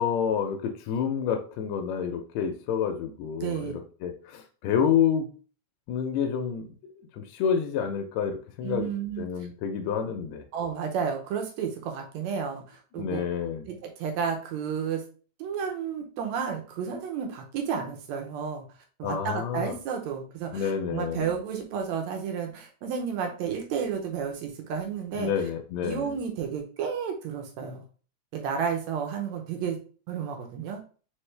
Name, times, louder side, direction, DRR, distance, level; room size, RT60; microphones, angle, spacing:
voice 1, 0.0-5.2 5.9-6.7 7.1-8.9 9.2-10.4 13.0-13.6 19.0-19.8 20.5-21.3 25.2-26.1, left 7 dB, 80° left, 4 dB, 1.7 m, -28 dB
voice 2, 3.4-3.7 8.6-9.3 10.5-13.2 13.7-15.0 15.4-18.7 19.0-25.3 25.8-27.8 28.3-29.8 30.1-30.8, right 7 dB, 75° right, 3 dB, 1.9 m, -32 dB
4.5 x 3.2 x 3.2 m, 0.39 s
omnidirectional pair, 3.4 m